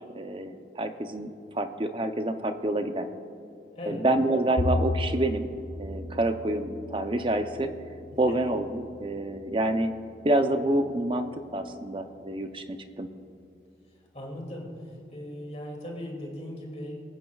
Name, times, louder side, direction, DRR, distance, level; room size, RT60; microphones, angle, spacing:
voice 1, 0.0-3.1 3.9-5.5 5.8-7.7 8.2-9.9 10.2-11.3 11.5-13.1, right 1 dB, 30° right, 8 dB, 0.6 m, -27 dB
Bowed string instrument, 4.6-10.9, left 1 dB, 85° left, 0.9 m, -35 dB
voice 2, 14.1-16.9, left 1 dB, 35° left, -1 dB, 2.5 m, -38 dB
23.5 x 9.2 x 2.4 m, 2.5 s
head